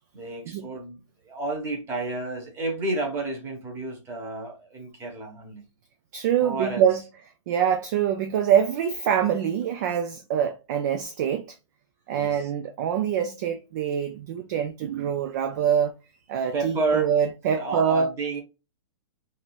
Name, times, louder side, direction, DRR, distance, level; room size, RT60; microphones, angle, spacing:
voice 1, 0.1-5.6 6.4-6.9 12.1-12.5 16.5-17.1 17.5-18.4, right 2 dB, 15° right, 1.1 m, -31 dB
voice 2, 6.1-7.0 7.5-11.6 12.1-15.9 16.3-18.1, right 8 dB, 35° right, 0.4 m, -25 dB
3.7 x 2.5 x 2.3 m
hypercardioid pair, 155°, 16 cm